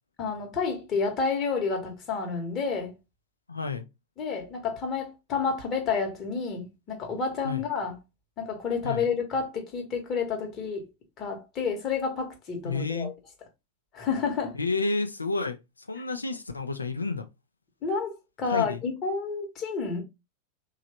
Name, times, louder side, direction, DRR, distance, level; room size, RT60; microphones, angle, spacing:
voice 1, 0.2-2.9 4.2-7.9 8.4-10.8 11.2-13.1 13.9-14.5 17.8-20.0, left 5 dB, 30° left, 1.1 m, -30 dB
voice 2, 3.5-3.9 7.4-7.6 8.8-9.1 12.6-13.1 14.5-17.3 18.5-18.8, left 3 dB, 80° left, 0.5 m, -30 dB
3.0 x 2.4 x 2.8 m
figure-of-eight pair, 90°, 0 cm